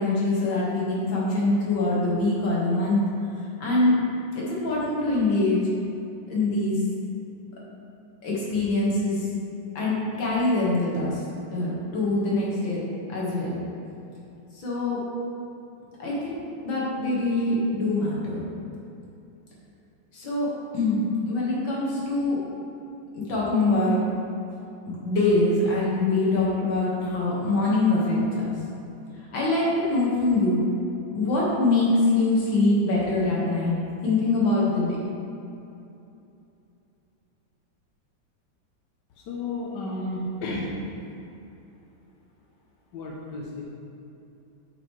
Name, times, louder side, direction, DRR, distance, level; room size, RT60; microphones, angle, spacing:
voice 1, 0.0-3.0 3.6-3.9 4.3-5.6 6.3-6.8 8.2-9.3 9.8-11.2 11.5-12.8 13.1-13.6 14.5-15.0 16.0-18.4 20.1-20.5 20.7-22.4 23.1-24.0 24.8-28.5 29.2-30.6 31.1-33.7 34.0-35.0, left 2 dB, 90° left, -6 dB, 2.4 m, -24 dB
voice 2, 39.2-40.8 42.9-43.6, left 2 dB, 70° left, -3 dB, 1.4 m, -32 dB
10.0 x 5.1 x 3.2 m, 2.8 s
omnidirectional pair, 2.0 m